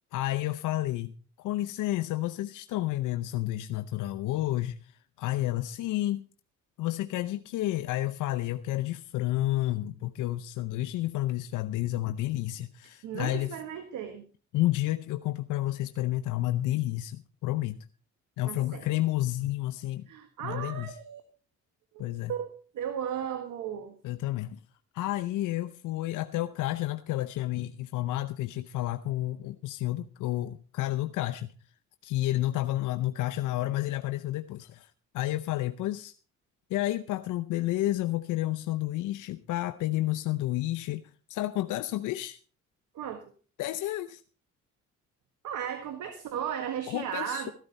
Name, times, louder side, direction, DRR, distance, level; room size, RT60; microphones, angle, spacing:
voice 1, 0.1-4.9 5.2-6.2 6.8-13.6 14.5-17.8 18.4-20.1 20.4-20.9 22.0-22.3 24.0-24.6 24.9-31.5 32.0-36.1 36.7-41.0 41.3-42.4 43.6-44.2 46.9-47.5, left 15 dB, 85° left, 9 dB, 0.7 m, -30 dB
voice 2, 12.8-14.2 18.5-18.9 20.1-21.2 21.9-23.9 42.9-43.2 45.4-47.5, right 9 dB, 80° right, 8 dB, 1.6 m, -36 dB
14.5 x 12.5 x 4.1 m, 0.38 s
cardioid pair, 90°, 30 cm